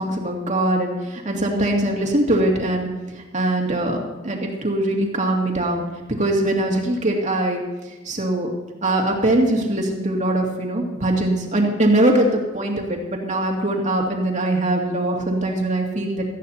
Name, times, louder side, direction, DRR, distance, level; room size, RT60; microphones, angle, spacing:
voice 1, 0.0-2.9 3.1-4.0 4.2-5.9 6.2-7.6 8.0-8.5 8.8-16.2, right 1 dB, 40° right, 0 dB, 2.4 m, -21 dB
18.0 x 14.0 x 2.8 m, 1.2 s
head